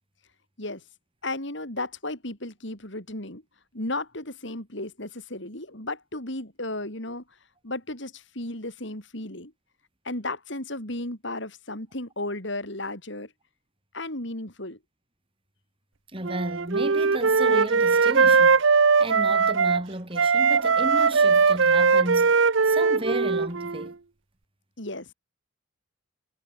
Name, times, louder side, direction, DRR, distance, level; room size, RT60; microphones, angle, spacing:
voice 1, 1.2-3.4 3.7-7.2 7.6-9.5 10.1-13.3 13.9-14.8 24.8-25.1, left 2 dB, 60° left, 5.2 m, -34 dB
voice 2, 16.1-22.3 22.6-23.9, right 1 dB, 25° right, 3.3 m, -33 dB
Wind instrument woodwind instrument, 16.2-19.8 20.2-23.9, right 5 dB, 65° right, 0.8 m, -20 dB
head